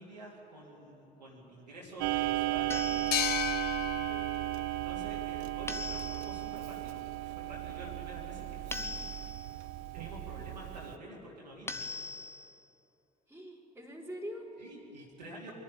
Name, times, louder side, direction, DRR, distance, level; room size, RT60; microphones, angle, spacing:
voice 1, 0.0-3.1 4.7-9.3 9.9-11.8 14.6-15.5, right 1 dB, 85° right, -5 dB, 3.1 m, -48 dB
Clock, 2.0-11.0, right 17 dB, 60° right, 0.6 m, -35 dB
sound 1, 2.7-3.6 5.7-6.5 8.7-9.6 11.7-12.6, left 2 dB, 10° left, 1.2 m, -41 dB
sound 2, 3.1-6.5, left 14 dB, 50° left, 0.6 m, -37 dB
voice 2, 4.1-4.7 13.3-14.5, equal, 10° right, 0 dB, 4.5 m, -45 dB
24.0 x 11.5 x 9.9 m, 2.9 s
figure-of-eight pair, 50°, 21 cm